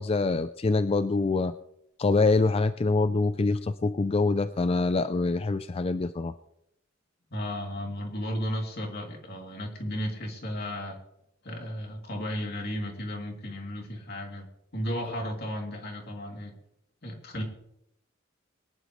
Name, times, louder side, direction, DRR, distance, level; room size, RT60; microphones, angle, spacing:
voice 1, 0.0-1.5 2.0-6.3, left 3 dB, 30° left, 12 dB, 0.4 m, -25 dB
voice 2, 7.3-11.0 11.4-14.4 14.7-16.5 17.0-17.4, equal, 50° left, 1 dB, 2.9 m, -34 dB
22.0 x 11.5 x 3.2 m, 0.80 s
head